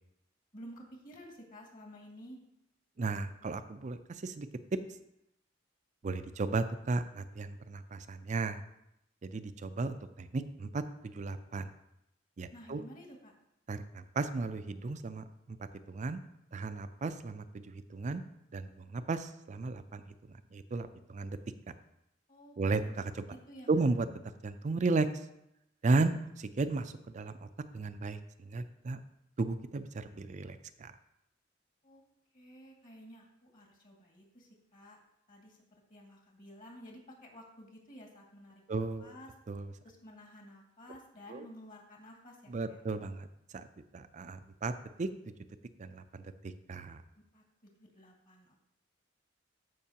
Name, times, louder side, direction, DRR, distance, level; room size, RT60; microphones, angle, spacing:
voice 1, 0.5-2.4 12.5-13.3 22.3-22.6 22.8-23.0 23.3-23.9 31.8-32.0 32.3-35.0 35.3-39.3 39.8-42.8 47.3-48.6, equal, 45° left, 0 dB, 2.1 m, -52 dB
voice 2, 3.0-4.8 6.0-8.6 9.2-11.7 12.4-12.8 13.7-16.2 16.5-18.2 18.5-20.0 20.3-21.4 22.6-23.2 23.7-24.1 24.4-25.1 25.8-27.5 27.7-29.0 29.4-30.9 38.7-39.1 39.5-39.7 41.3-41.5 42.5-43.7 43.9-44.7 45.0-45.1 45.8-47.0, right 3 dB, 40° right, 10 dB, 0.4 m, -35 dB
14.0 x 5.5 x 2.8 m, 0.82 s
head